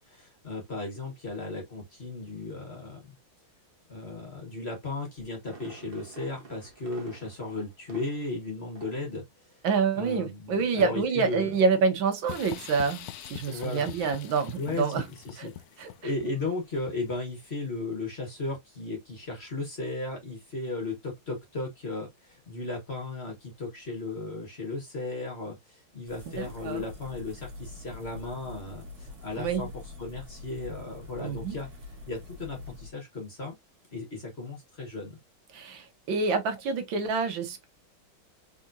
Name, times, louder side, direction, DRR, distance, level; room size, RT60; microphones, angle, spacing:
voice 1, 0.1-3.1 3.9-9.2 9.9-11.5 13.5-13.9 14.6-31.7 32.0-33.5 33.9-35.2, left 3 dB, 35° left, 1.5 m, -36 dB
Fireworks, 5.2-8.4 8.8-9.1 9.5-9.6, right 3 dB, 30° right, 1.3 m, -49 dB
voice 2, 9.6-15.0 15.4-15.5 15.8-15.9 26.3-26.8 29.3-29.6 31.2-31.6 35.5-37.7, right 5 dB, 70° right, 1.6 m, -27 dB
sound 1, 12.3-17.4, left 12 dB, 85° left, 0.8 m, -43 dB
sound 2, 26.1-32.9, left 3 dB, 50° right, 2.1 m, -44 dB
4.1 x 3.6 x 2.6 m
omnidirectional pair, 2.3 m